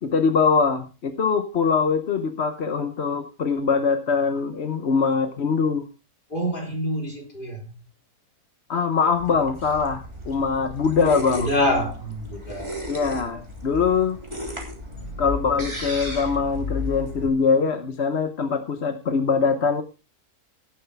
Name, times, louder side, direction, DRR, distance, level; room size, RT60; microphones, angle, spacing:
voice 1, 0.0-5.9 8.7-11.5 12.9-14.2 15.2-19.8, left 5 dB, 50° left, 1.1 m, -23 dB
voice 2, 6.3-7.7 11.4-12.9, equal, 35° left, 3.7 m, -26 dB
sound 1, 9.1-17.3, left 1 dB, 20° right, 3.1 m, -34 dB
17.0 x 8.1 x 3.4 m
omnidirectional pair, 1.5 m